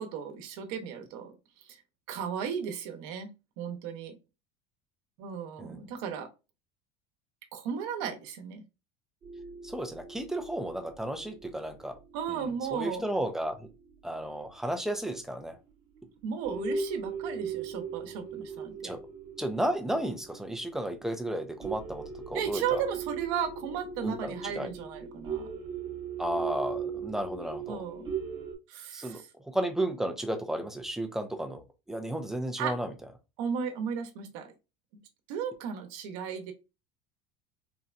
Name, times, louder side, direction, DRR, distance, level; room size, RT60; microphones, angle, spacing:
voice 1, 0.0-1.8 2.1-3.3 3.6-4.2 5.2-6.3 7.5-8.6 12.1-13.1 16.2-18.9 22.3-25.5 27.7-28.1 28.7-29.3 32.6-32.8 33.4-34.5 35.3-36.5, right 7 dB, 70° right, 6 dB, 0.8 m, -35 dB
sound 1, 9.2-13.2 13.6-13.7 14.8-14.9 15.4-15.5 16.0-16.2 16.4-28.5, right 5 dB, 25° right, 0.7 m, -39 dB
voice 2, 9.6-12.0 12.3-12.4 12.7-13.7 14.0-15.6 18.8-19.0 19.4-22.8 24.0-24.7 26.2-27.8 28.9-29.2 29.4-31.6 31.9-32.9, right 1 dB, 5° right, 5 dB, 0.3 m, -33 dB
3.9 x 2.2 x 2.4 m, 0.27 s
cardioid pair, 170°, 18 cm